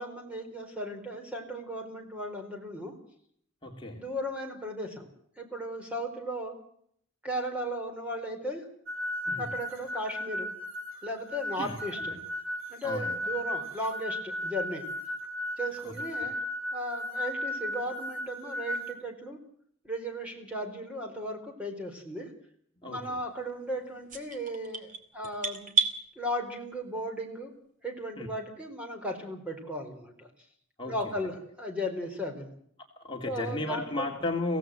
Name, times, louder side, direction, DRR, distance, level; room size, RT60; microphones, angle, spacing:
voice 1, 0.0-2.9 3.9-5.1 5.4-6.5 7.2-8.7 9.4-10.5 11.0-12.1 12.7-14.8 15.6-16.4 16.7-19.4 19.8-22.3 22.8-25.7 26.2-27.5 27.8-30.3 30.9-32.5 33.2-34.1, equal, 5° right, 3 dB, 4.4 m, -36 dB
voice 2, 3.6-4.0 9.3-9.5 11.6-11.8 12.1-12.2 12.8-13.2 15.8-16.3 22.8-23.2 28.2-28.3 30.8-31.0 33.0-34.6, left 2 dB, 25° left, 0 dB, 2.5 m, -34 dB
sound 1, 8.9-18.9, left 1 dB, 80° right, 7.5 m, -35 dB
sound 2, 24.1-26.0, right 6 dB, 40° right, 2.9 m, -30 dB
24.5 x 17.0 x 7.7 m, 0.67 s
head